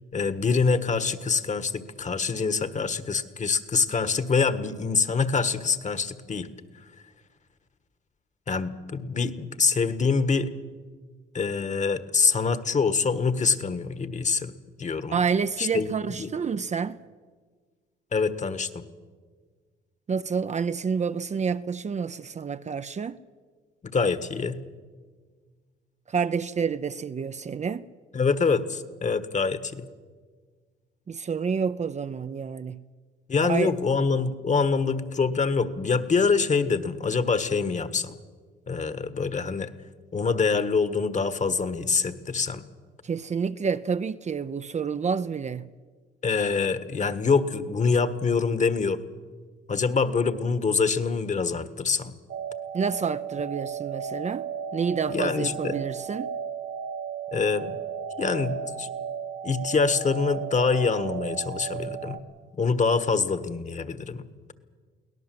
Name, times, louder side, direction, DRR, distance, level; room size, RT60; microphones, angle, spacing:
voice 1, 0.1-6.5 8.5-10.5 11.3-14.5 14.8-15.2 15.6-16.3 18.1-18.8 23.8-24.6 28.1-29.8 33.3-38.1 38.7-39.7 40.1-42.6 46.2-49.0 49.7-52.1 55.1-55.8 57.3-57.8 58.2-58.9 59.4-62.2 62.6-64.3, left 5 dB, 35° left, 1.5 m, -25 dB
voice 2, 15.1-17.0 20.1-23.2 26.1-27.9 31.1-32.8 33.4-33.7 43.0-45.7 52.7-54.5 54.7-56.3, right 6 dB, 35° right, 0.7 m, -28 dB
sound 1, 52.3-62.2, right 7 dB, 80° right, 2.1 m, -35 dB
23.5 x 17.5 x 7.8 m
cardioid pair, 90°, 20 cm